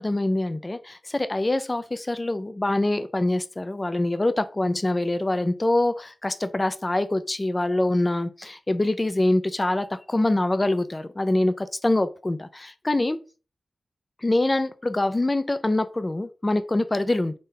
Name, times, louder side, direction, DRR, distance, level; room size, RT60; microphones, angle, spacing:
voice 1, 0.0-13.2 14.2-17.3, left 2 dB, 25° left, 0.4 m, -24 dB
3.7 x 2.7 x 3.4 m
wide cardioid pair, 75°, 0 cm